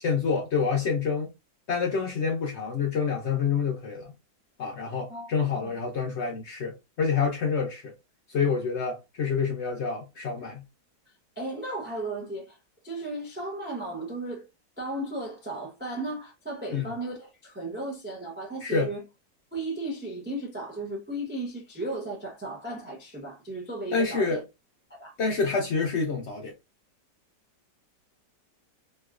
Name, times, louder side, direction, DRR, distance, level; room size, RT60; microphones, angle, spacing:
voice 1, 0.0-1.3 1.7-4.1 4.6-7.9 8.3-10.6 16.7-16.9 18.6-18.9 23.9-24.4 25.2-26.5, left 5 dB, 70° left, 0.6 m, -27 dB
voice 2, 11.4-12.6 12.8-14.4 14.8-19.0 19.5-24.4 24.9-25.1, right 2 dB, 10° right, 0.5 m, -35 dB
3.0 x 2.9 x 2.4 m
omnidirectional pair, 1.9 m